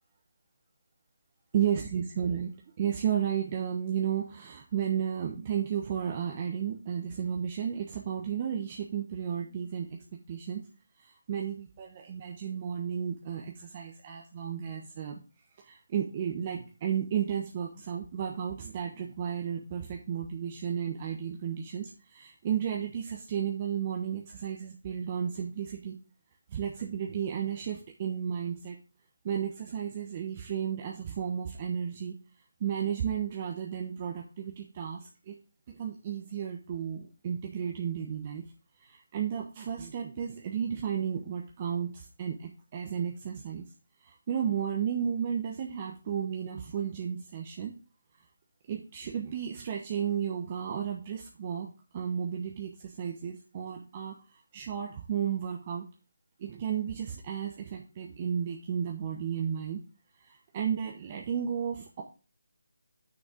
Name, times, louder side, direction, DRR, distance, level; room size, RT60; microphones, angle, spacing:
voice 1, 1.5-2.5 2.8-9.9 10.3-10.6 11.0-15.2 15.6-25.9 26.5-28.8 29.2-32.1 32.6-35.4 35.7-38.4 38.8-43.6 44.0-47.7 48.7-54.1 54.5-55.8 56.4-59.8 60.2-62.0, right 8 dB, 30° right, 0 dB, 1.1 m, -33 dB
6.5 x 6.3 x 5.1 m, 0.34 s
figure-of-eight pair, 160°, 0 cm